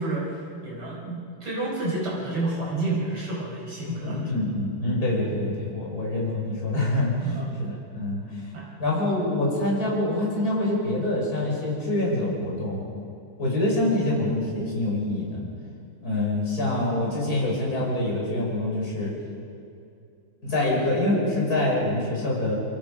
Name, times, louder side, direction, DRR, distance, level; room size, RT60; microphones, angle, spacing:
voice 1, 0.0-4.2 7.2-7.5 8.5-8.7, right 2 dB, 70° right, -4 dB, 5.7 m, -30 dB
voice 2, 3.9-7.3 7.6-8.2 8.8-12.9 13.4-15.4 16.0-19.1 20.4-22.6, left 1 dB, 40° left, -3 dB, 5.9 m, -25 dB
27.0 x 24.5 x 5.1 m, 2.5 s
omnidirectional pair, 2.4 m